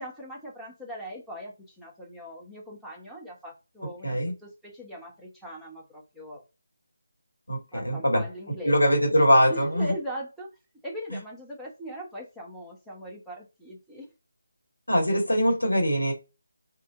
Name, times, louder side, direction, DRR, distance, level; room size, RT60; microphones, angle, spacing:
voice 1, 0.0-6.4 7.7-9.0 9.5-10.5 10.8-14.1, equal, ahead, 1.0 m, -40 dB
voice 2, 4.0-4.3 7.5-8.2 8.6-9.9 14.9-16.1, equal, 80° left, 1.6 m, -22 dB
2.7 x 2.6 x 3.6 m
figure-of-eight pair, 155°, 0 cm